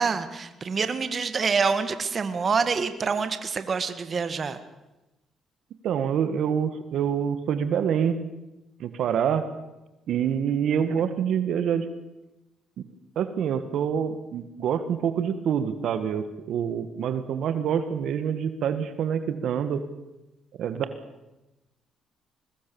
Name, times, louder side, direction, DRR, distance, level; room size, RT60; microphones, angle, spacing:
voice 1, 0.0-4.6, right 5 dB, 40° right, 11 dB, 1.8 m, -26 dB
voice 2, 5.8-8.2 8.8-9.4 10.1-11.8 12.8-12.9 13.1-19.8 20.6-20.9, right 8 dB, 75° right, 10 dB, 1.6 m, -26 dB
22.5 x 19.5 x 7.0 m, 0.99 s
cardioid pair, 90°, 0 cm